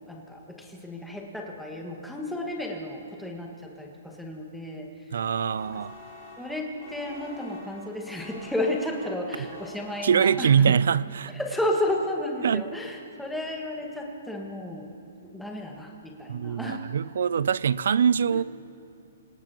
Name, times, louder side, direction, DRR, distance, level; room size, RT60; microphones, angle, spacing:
voice 1, 0.1-4.9 6.4-10.8 11.3-14.9 15.2-16.9 18.3-18.4, left 1 dB, ahead, 1.7 m, -32 dB
voice 2, 5.1-6.0 10.0-11.3 12.4-12.6 16.3-18.4, right 7 dB, 70° right, 0.4 m, -23 dB
sound 1, 5.5-10.8, left 2 dB, 35° left, 4.1 m, -48 dB
26.5 x 18.0 x 3.0 m
hypercardioid pair, 150°, 0 cm